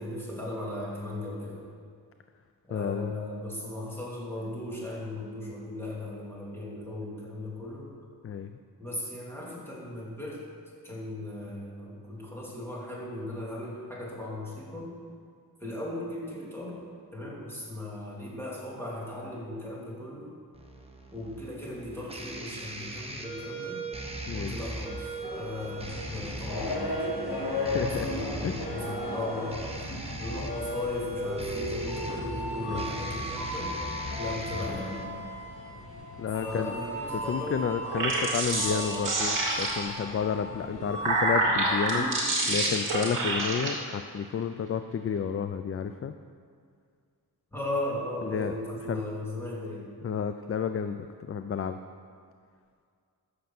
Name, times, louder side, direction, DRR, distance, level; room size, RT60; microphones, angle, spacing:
voice 1, 0.0-1.6 2.6-7.9 8.8-10.4 10.8-15.0 15.6-16.8 17.1-20.4 21.1-23.8 24.3-29.7 30.2-33.8 34.2-35.1 36.4-37.6 47.5-49.9, left 1 dB, 5° left, -6 dB, 3.1 m, -37 dB
voice 2, 2.7-3.1 8.2-8.5 24.3-24.5 27.6-28.1 28.4-28.5 32.7-32.9 36.2-36.8 37.3-42.1 42.5-46.1 48.2-48.5 48.9-49.0 50.0-51.8, left 7 dB, 40° left, 9 dB, 0.4 m, -31 dB
sound 1, 20.5-35.0, right 2 dB, 15° right, 1.2 m, -38 dB
sound 2, 25.2-41.3, left 1 dB, 75° left, 3.6 m, -36 dB
sound 3, 37.8-40.0 40.7-43.7, right 2 dB, 55° right, 2.9 m, -27 dB
15.0 x 6.7 x 6.0 m, 2.2 s
wide cardioid pair, 135°, 38 cm